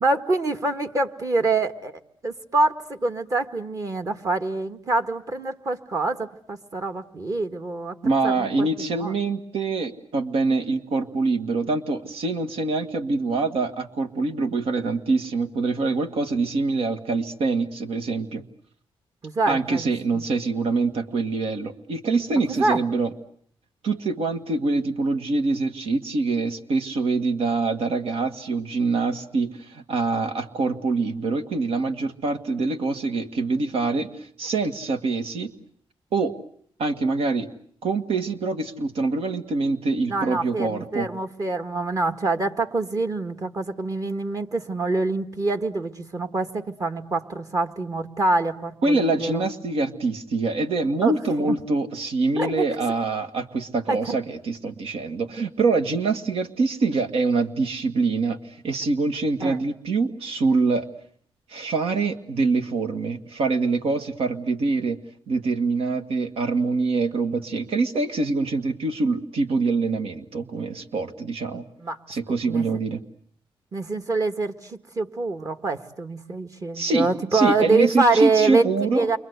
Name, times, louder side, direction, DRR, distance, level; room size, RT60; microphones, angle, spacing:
voice 1, 0.0-8.0 8.2-8.7 9.0-9.1 19.2-20.2 22.5-22.8 40.1-49.5 51.0-51.6 52.4-52.6 53.9-54.2 59.4-59.6 71.8-72.0 72.4-72.6 73.7-79.2, right 3 dB, 35° right, 8 dB, 1.7 m, -25 dB
voice 2, 8.0-18.4 19.5-23.1 23.8-35.5 36.1-36.4 36.8-37.5 37.8-41.1 48.8-60.9 61.5-65.0 65.3-71.6 72.1-73.0 76.7-79.1, right 3 dB, 80° right, 8 dB, 1.8 m, -25 dB
29.0 x 24.5 x 8.1 m, 0.64 s
cardioid pair, 125°, 10 cm